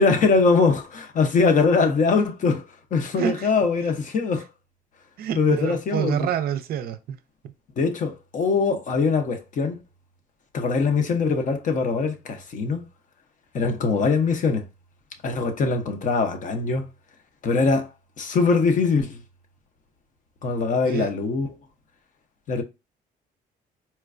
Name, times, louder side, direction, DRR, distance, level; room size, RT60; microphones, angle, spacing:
voice 1, 0.0-2.6 2.9-4.5 5.4-6.3 7.8-9.8 10.5-12.8 13.5-14.6 15.2-16.9 17.4-17.9 18.2-19.2 20.4-21.5 22.5-22.6, left 4 dB, 50° left, 0.7 m, -22 dB
voice 2, 3.2-3.5 5.2-7.2 20.8-21.1, right 9 dB, 65° right, 0.4 m, -27 dB
4.3 x 2.2 x 2.4 m
cardioid pair, 110°, 17 cm